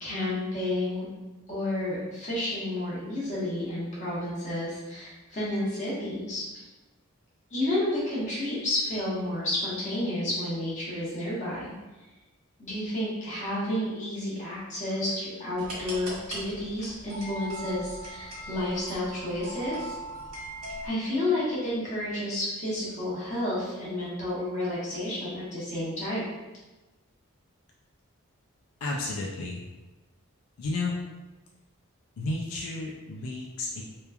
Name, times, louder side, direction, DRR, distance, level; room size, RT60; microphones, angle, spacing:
voice 1, 0.0-1.0 1.5-6.6 7.5-11.7 12.6-20.0 20.8-26.2, left 1 dB, 35° left, -8 dB, 1.0 m, -31 dB
sound 1, 15.6-20.9, right 1 dB, 85° right, 1.2 m, -40 dB
voice 2, 28.8-29.6 30.6-30.9 32.2-33.8, left 2 dB, 80° left, -2 dB, 0.3 m, -32 dB
3.0 x 2.2 x 2.3 m, 1.1 s
head